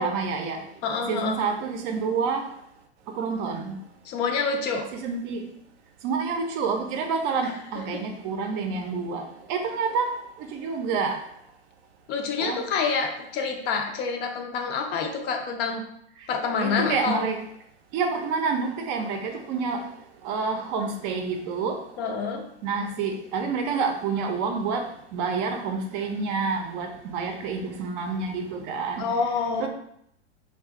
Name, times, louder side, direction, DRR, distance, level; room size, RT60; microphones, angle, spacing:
voice 1, 0.0-0.7 1.1-2.5 3.1-3.8 4.9-5.5 6.0-10.1 10.4-11.2 12.4-12.6 16.6-17.4 17.9-19.9 20.2-21.8 22.6-29.1 29.6-29.7, right 5 dB, 45° right, 0.6 m, -28 dB
voice 2, 0.8-1.4 4.1-4.8 7.4-7.5 12.1-15.8 16.3-17.3 22.0-22.4 29.0-29.7, left 5 dB, 30° left, 0.5 m, -27 dB
2.4 x 2.4 x 3.6 m
hypercardioid pair, 110°, 34 cm